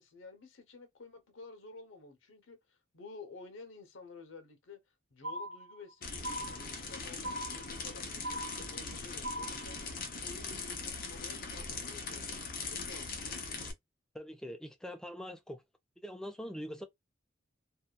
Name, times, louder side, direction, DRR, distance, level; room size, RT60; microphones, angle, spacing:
voice 1, 0.0-4.8 5.1-13.6, left 4 dB, 80° left, 0.8 m, -52 dB
sound 1, 5.2-5.9 6.2-6.9 7.2-7.9 8.2-8.9 9.2-9.9, equal, 80° right, 0.9 m, -40 dB
sound 2, 6.0-13.7, left 4 dB, 50° left, 0.7 m, -41 dB
voice 2, 14.1-15.6 16.0-16.9, equal, 5° left, 0.4 m, -43 dB
2.7 x 2.2 x 2.2 m
head